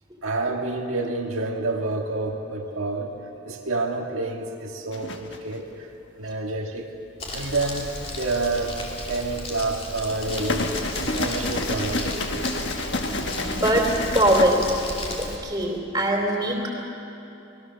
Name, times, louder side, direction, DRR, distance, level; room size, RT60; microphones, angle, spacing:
voice 1, 0.2-3.1 3.4-5.9 6.2-6.9 7.3-8.8 9.0-10.7 11.0-12.1, right 2 dB, 75° right, 1 dB, 1.7 m, -28 dB
sound 1, 4.9-5.6 7.5-8.2 10.1-14.5, left 2 dB, 55° left, 1.5 m, -29 dB
Crumpling crinkling, 7.2-15.4, left 1 dB, 30° left, 2.9 m, -34 dB
voice 2, 13.4-13.8 14.1-14.6 15.2-16.7, right 1 dB, 20° right, 0 dB, 3.3 m, -22 dB
25.5 x 20.0 x 6.8 m, 2.9 s
head